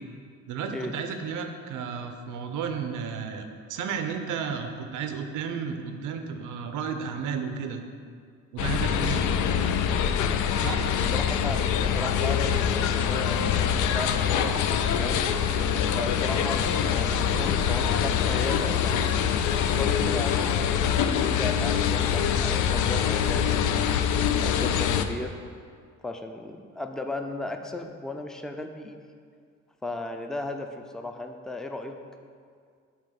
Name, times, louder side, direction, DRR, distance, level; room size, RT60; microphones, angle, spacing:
voice 1, 0.5-7.8 8.5-9.3 10.6-10.9, right 6 dB, 85° right, 6 dB, 0.7 m, -33 dB
sound 1, 8.6-25.1, left 8 dB, 80° left, 0.4 m, -24 dB
voice 2, 11.1-13.4 13.9-15.3 16.0-19.0 19.6-24.0 24.4-25.4 26.0-29.0 29.8-32.0, left 2 dB, ahead, 5 dB, 0.4 m, -36 dB
7.4 x 3.0 x 5.7 m, 2.1 s
cardioid pair, 90°, 30 cm